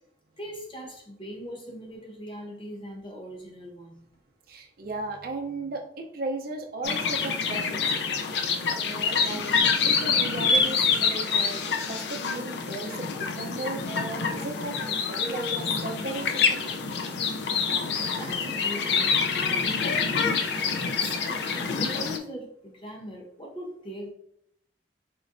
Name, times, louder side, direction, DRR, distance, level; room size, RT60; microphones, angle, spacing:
voice 1, 0.4-4.0 17.6-24.1, equal, 30° left, -1 dB, 1.0 m, -41 dB
voice 2, 4.5-7.8 8.3-16.6, right 2 dB, 55° right, 2 dB, 0.5 m, -36 dB
sound 1, 6.8-22.2, left 5 dB, 70° left, 0.4 m, -26 dB
4.4 x 3.1 x 2.5 m, 0.73 s
head